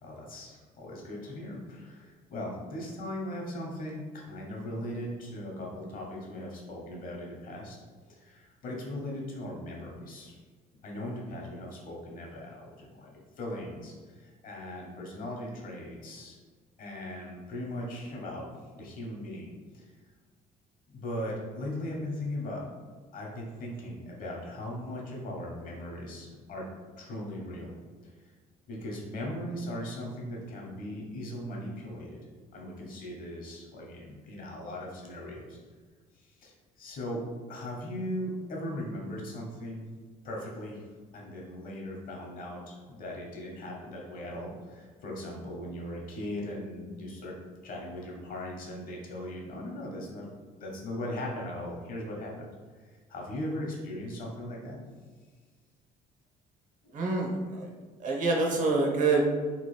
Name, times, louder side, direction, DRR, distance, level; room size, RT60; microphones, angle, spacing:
voice 1, 0.0-7.8 8.1-10.4 10.8-16.4 16.8-18.5 18.7-19.5 19.7-19.9 20.9-22.6 23.1-26.7 27.0-27.7 28.0-28.1 28.7-32.2 32.5-35.6 36.1-37.2 37.5-39.8 40.2-40.9 41.1-47.4 47.6-50.3 50.6-52.5 52.7-54.8 56.8-57.0, left 1 dB, 55° left, -2 dB, 0.9 m, -38 dB
voice 2, 56.9-57.7 58.0-59.3, right 3 dB, 50° right, 0 dB, 0.7 m, -26 dB
3.0 x 2.2 x 3.1 m, 1.4 s
cardioid pair, 110°, 17 cm